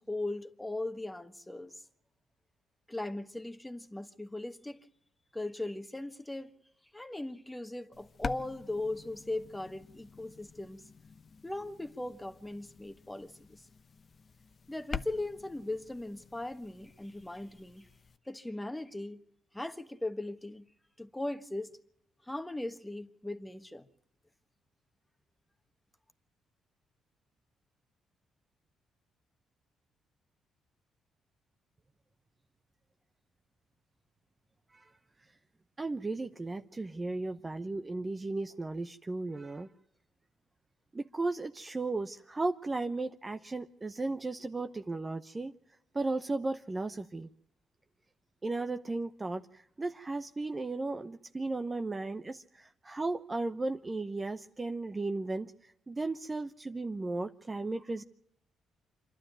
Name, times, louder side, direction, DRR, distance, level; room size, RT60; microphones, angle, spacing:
voice 1, 0.0-1.8 2.9-4.8 5.3-6.5 6.9-10.8 11.4-13.6 14.7-17.9 18.3-19.2 19.5-20.6 21.0-21.8 22.2-23.9, left 2 dB, 10° left, 1.4 m, -38 dB
sound 1, 7.9-18.2, left 5 dB, 40° left, 0.9 m, -46 dB
voice 2, 35.8-39.7 40.9-45.5 45.9-47.3 48.4-55.5 55.9-58.0, right 2 dB, 20° right, 0.8 m, -35 dB
26.5 x 12.0 x 9.2 m
cardioid pair, 90°, 0 cm